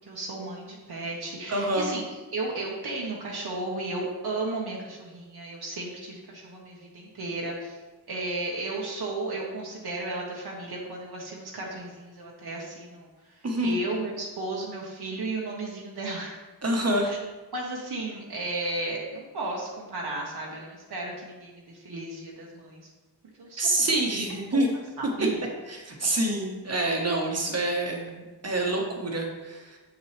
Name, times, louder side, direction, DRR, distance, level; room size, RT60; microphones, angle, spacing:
voice 1, 0.1-2.0 2.3-7.8 8.1-16.4 17.0-17.2 17.5-22.9 23.4-23.9 24.5-24.6 25.0-25.4, right 2 dB, 65° right, -3 dB, 1.2 m, -34 dB
voice 2, 1.5-1.9 13.4-13.8 16.6-17.1 23.6-24.7 25.7-29.8, right 1 dB, 40° right, 1 dB, 1.3 m, -27 dB
7.2 x 7.2 x 3.3 m, 1.2 s
wide cardioid pair, 160°, 41 cm